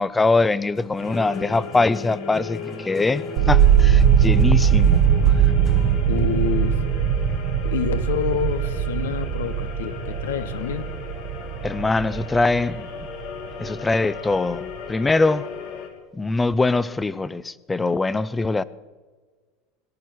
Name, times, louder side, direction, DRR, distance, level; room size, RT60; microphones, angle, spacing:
voice 1, 0.0-5.0 11.6-12.9 13.6-15.5 16.1-18.6, left 3 dB, 15° left, 0.6 m, -22 dB
sound 1, 0.7-6.1, left 5 dB, 35° left, 1.4 m, -38 dB
sound 2, 1.0-15.9, left 6 dB, 65° left, 2.5 m, -37 dB
sound 3, 3.4-13.4 13.6-14.4, right 9 dB, 60° right, 1.0 m, -20 dB
voice 2, 6.1-6.9 7.6-10.9, left 8 dB, 85° left, 1.1 m, -28 dB
19.5 x 11.0 x 4.7 m
hypercardioid pair, 100°, 0 cm